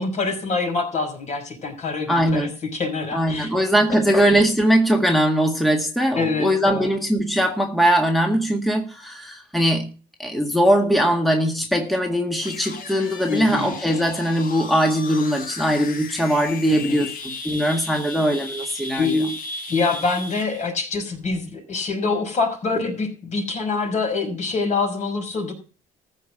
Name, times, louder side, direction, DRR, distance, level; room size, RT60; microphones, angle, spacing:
voice 1, 0.0-4.0 6.1-6.9 13.3-13.7 16.7-17.1 19.0-19.3 19.7-25.5, left 4 dB, 45° left, 5.6 m, -25 dB
voice 2, 2.1-2.5 3.1-9.9 10.2-19.2, equal, ahead, 1.8 m, -20 dB
sound 1, 12.4-20.7, left 3 dB, 60° left, 4.4 m, -36 dB
14.5 x 5.4 x 8.5 m
cardioid pair, 110°, 17 cm